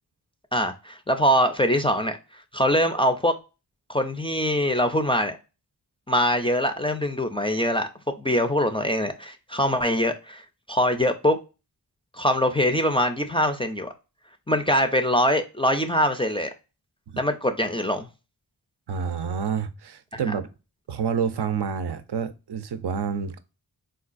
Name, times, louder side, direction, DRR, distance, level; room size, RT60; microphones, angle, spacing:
voice 1, 0.5-3.3 3.9-5.4 6.1-7.9 8.2-11.4 12.1-13.9 14.5-16.5 17.2-18.1 20.1-20.2, equal, 15° left, 0.3 m, -23 dB
voice 2, 18.9-20.5 20.9-23.4, right 6 dB, 75° right, 0.5 m, -28 dB
3.8 x 2.3 x 2.4 m
wide cardioid pair, 65°, 41 cm